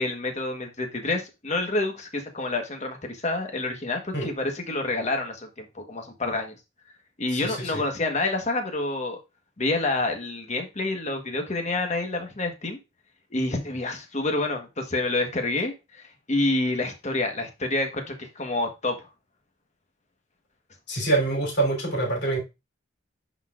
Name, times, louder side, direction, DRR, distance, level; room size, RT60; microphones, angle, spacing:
voice 1, 0.0-6.5 7.2-9.2 9.6-12.8 13.3-19.0, left 2 dB, 35° left, 1.3 m, -28 dB
voice 2, 7.3-7.8 20.9-22.4, right 2 dB, 55° left, 3.4 m, -25 dB
10.5 x 4.1 x 2.4 m
head